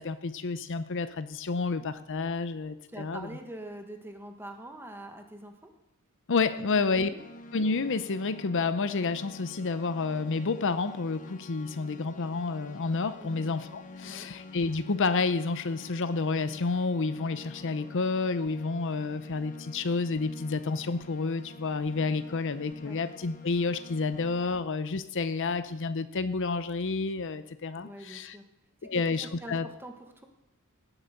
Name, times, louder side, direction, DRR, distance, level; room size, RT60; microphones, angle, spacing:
voice 1, 0.0-3.3 6.3-7.1 7.5-28.4 28.8-29.7, left 4 dB, 60° left, 13 dB, 0.7 m, -30 dB
voice 2, 2.9-5.7 6.6-6.7 6.9-7.2 13.2-13.5 14.0-14.3 22.8-23.0 27.7-28.4 28.9-29.0 29.4-30.3, right 1 dB, 10° right, 4 dB, 1.6 m, -44 dB
sound 1, 7.2-24.6, left 2 dB, 35° left, 1.1 m, -48 dB
17.5 x 8.1 x 6.7 m, 0.89 s
head